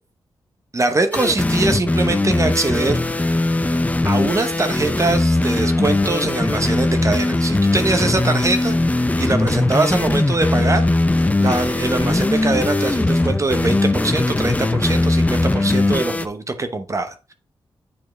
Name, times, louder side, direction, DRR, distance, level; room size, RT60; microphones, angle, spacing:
voice 1, 0.7-3.4 4.0-8.8 9.2-10.9 11.4-17.3, right 3 dB, 30° right, 0.8 m, -22 dB
sound 1, 1.1-16.3, left 2 dB, 15° left, 0.5 m, -19 dB
sound 2, 9.1-15.4, left 3 dB, 70° left, 1.8 m, -43 dB
8.5 x 4.4 x 3.2 m
cardioid pair, 85°, 10 cm